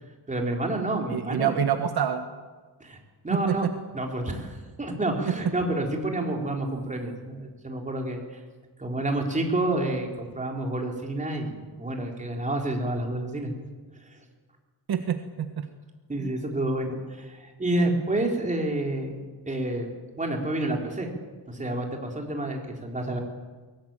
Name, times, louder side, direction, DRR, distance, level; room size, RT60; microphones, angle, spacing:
voice 1, 0.3-1.6 2.8-3.0 3.2-3.7 3.9-8.2 8.8-13.5 14.0-14.2 16.1-19.9 20.2-21.1 21.5-23.2, right 1 dB, 20° right, 1 dB, 4.0 m, -29 dB
voice 2, 1.1-2.2 3.3-3.7 5.3-5.4 14.9-15.7 16.2-16.3, right 8 dB, 60° right, 7 dB, 1.5 m, -27 dB
22.5 x 19.0 x 8.9 m, 1.4 s
wide cardioid pair, 150°, 42 cm